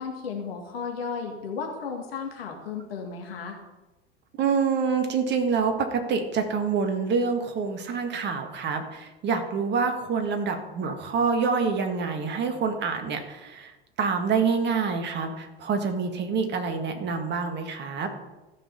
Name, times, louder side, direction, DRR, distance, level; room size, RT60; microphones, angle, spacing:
voice 1, 0.0-3.6, left 5 dB, 65° left, 1 dB, 2.2 m, -34 dB
voice 2, 4.4-18.1, right 5 dB, 35° right, 5 dB, 1.9 m, -26 dB
14.5 x 6.5 x 5.5 m, 1.1 s
figure-of-eight pair, 80°, 32 cm